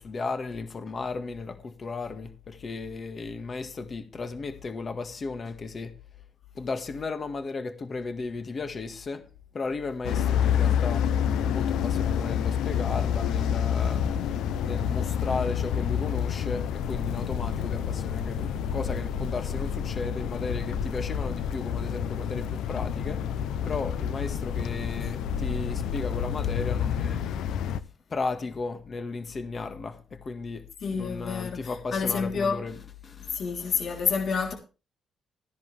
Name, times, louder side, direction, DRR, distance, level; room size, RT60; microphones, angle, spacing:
voice 1, 0.0-5.9 6.6-9.2 9.5-11.1 11.4-14.0 14.6-23.2 23.6-27.2 28.1-30.6 30.9-33.4 33.6-33.9, left 3 dB, 40° left, 1.8 m, -35 dB
sound 1, 10.0-27.8, left 8 dB, 85° left, 0.7 m, -28 dB
voice 2, 30.8-32.7 33.3-34.5, left 5 dB, 55° left, 3.5 m, -28 dB
14.5 x 10.5 x 3.4 m
cardioid pair, 90°, 0 cm